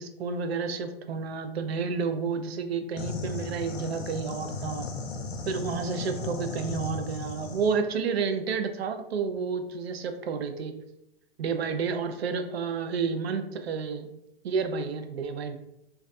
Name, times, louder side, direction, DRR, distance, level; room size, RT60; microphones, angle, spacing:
voice 1, 0.0-4.8 5.5-10.7 11.4-14.1 14.4-15.6, right 5 dB, 80° right, 8 dB, 0.5 m, -30 dB
sound 1, 3.0-7.8, left 3 dB, 90° left, 0.5 m, -36 dB
2.2 x 2.2 x 2.5 m, 0.83 s
hypercardioid pair, 135°, 31 cm